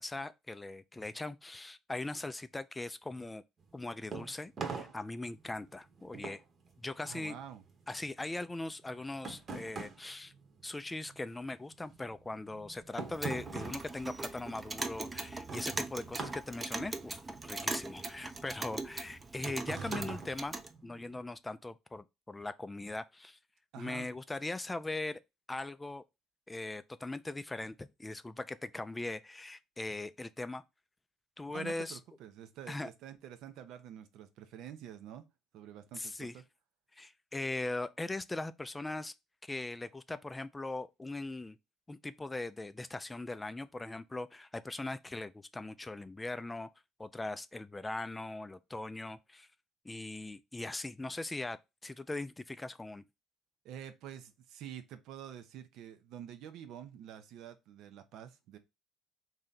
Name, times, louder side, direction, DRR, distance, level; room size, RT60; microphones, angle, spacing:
voice 1, 0.0-3.4 3.7-6.4 6.8-7.3 7.9-10.3 10.6-17.2 17.4-20.5 20.8-23.4 23.8-25.2 25.5-26.0 26.5-30.6 31.4-32.0 32.7-32.9 36.0-36.4 36.9-39.1 39.4-41.6 41.9-46.7 47.0-49.5 49.8-51.6 51.8-53.0, left 2 dB, 15° left, 0.4 m, -40 dB
sound 1, 3.6-11.3 11.5-21.2, right 4 dB, 45° right, 1.0 m, -45 dB
voice 2, 7.0-7.6 23.7-24.1 31.5-35.3 35.5-36.4 53.6-58.6, right 10 dB, 70° right, 0.6 m, -48 dB
Clock, 13.0-20.7, right 3 dB, 25° right, 0.6 m, -41 dB
3.2 x 2.7 x 3.9 m
supercardioid pair, 70°, 0 cm